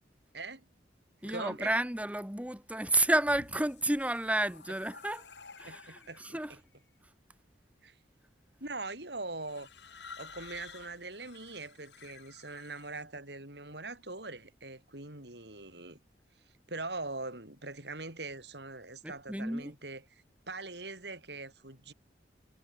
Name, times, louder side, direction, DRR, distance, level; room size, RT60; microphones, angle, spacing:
voice 1, 0.3-0.7 1.2-1.7 5.6-6.6 7.8-7.9 8.6-9.7 10.2-16.0 16.7-21.9, right 3 dB, 70° right, 7.6 m, -42 dB
voice 2, 1.2-5.2 5.6-6.5 19.0-19.7, right 1 dB, 10° right, 2.9 m, -31 dB
sound 1, 3.2-6.5 7.4-7.8 9.4-13.0, left 5 dB, 80° left, 5.7 m, -52 dB
head